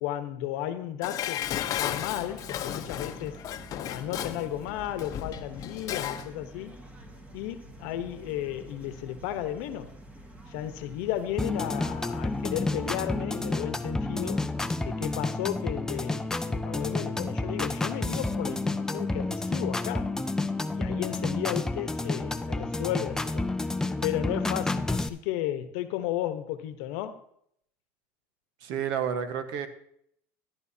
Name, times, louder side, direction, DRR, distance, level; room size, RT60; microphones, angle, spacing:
voice 1, 0.0-3.4 3.9-6.8 7.3-9.9 10.5-14.4 14.8-20.1 20.7-23.5 24.0-27.2, left 12 dB, 80° left, 10 dB, 1.0 m, -34 dB
Dishes pots and pans, 1.0-6.3 6.6-6.7, left 11 dB, 50° left, 0.8 m, -34 dB
sound 1, 1.4-13.1, right 1 dB, 20° right, 1.7 m, -48 dB
sound 2, 11.4-25.1, left 2 dB, 10° left, 0.5 m, -30 dB
voice 2, 28.6-29.7, right 8 dB, 70° right, 9 dB, 1.2 m, -30 dB
13.5 x 10.5 x 2.8 m, 0.69 s
supercardioid pair, 105°, 7 cm